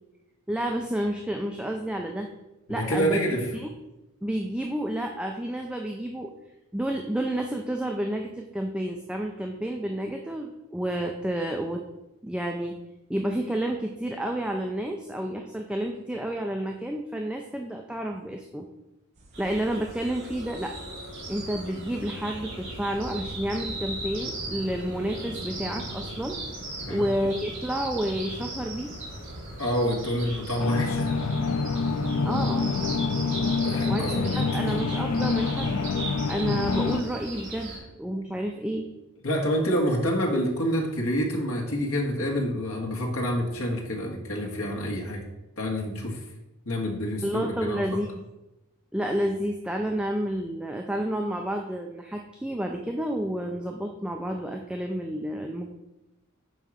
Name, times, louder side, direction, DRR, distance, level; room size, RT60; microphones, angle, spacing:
voice 1, 0.5-2.3 2.7-3.2 3.5-3.7 4.2-6.3 6.7-11.8 12.2-12.8 13.1-18.7 19.4-20.7 21.3-26.4 26.9-28.9 32.2-32.7 33.9-35.8 36.3-38.9 47.2-48.1 48.9-55.7, right 1 dB, 5° right, 2 dB, 0.4 m, -30 dB
voice 2, 2.7-3.5 26.8-27.1 29.6-31.1 33.6-34.6 39.2-45.3 45.6-46.2 46.6-48.0, equal, 70° left, 0 dB, 1.6 m, -27 dB
sound 1, 19.2-37.0, right 1 dB, 35° right, 1.1 m, -44 dB
sound 2, 19.3-37.8, right 2 dB, 55° right, 2.7 m, -38 dB
sound 3, 30.6-37.0, left 4 dB, 85° left, 0.5 m, -26 dB
5.5 x 4.7 x 6.2 m, 0.98 s
head